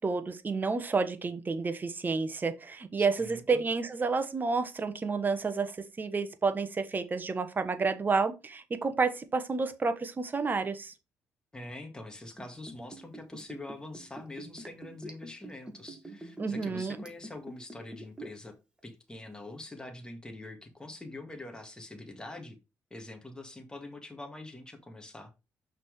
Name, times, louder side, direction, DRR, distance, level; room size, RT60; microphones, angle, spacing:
voice 1, 0.0-10.9 16.4-17.0, right 4 dB, 30° right, 1.3 m, -30 dB
voice 2, 3.0-3.6 11.5-18.6 18.8-22.6 22.9-25.3, left 2 dB, 15° left, 2.0 m, -44 dB
Liquid, 12.3-18.5 18.8-18.9, right 1 dB, 15° right, 2.1 m, -45 dB
6.0 x 4.5 x 4.8 m
cardioid pair, 75°, 6 cm